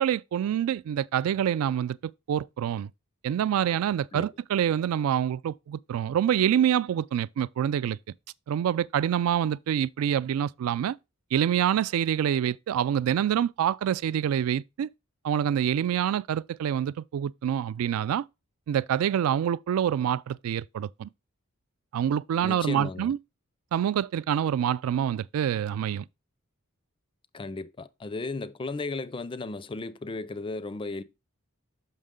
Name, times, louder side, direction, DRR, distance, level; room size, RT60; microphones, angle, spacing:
voice 1, 0.0-2.0 2.3-2.9 3.2-8.0 8.5-11.0 11.3-14.9 15.2-18.2 18.7-21.1 21.9-23.2 23.7-26.0, right 9 dB, 75° right, 0.3 m, -26 dB
voice 2, 22.4-23.1 27.3-31.0, left 3 dB, 25° left, 0.4 m, -35 dB
6.5 x 5.6 x 3.7 m
head